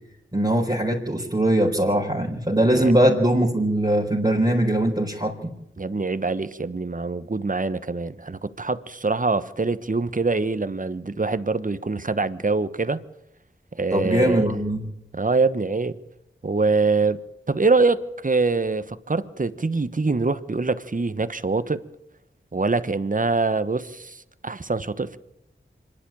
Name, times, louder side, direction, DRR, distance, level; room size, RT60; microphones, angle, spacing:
voice 1, 0.3-5.5 13.9-14.8, right 1 dB, 20° right, 4.5 m, -21 dB
voice 2, 5.8-13.0 13.8-14.5 15.1-16.0 16.4-17.2 17.5-21.8 22.5-25.2, right 3 dB, 40° right, 1.2 m, -24 dB
25.5 x 11.0 x 9.1 m
wide cardioid pair, 45°, 20 cm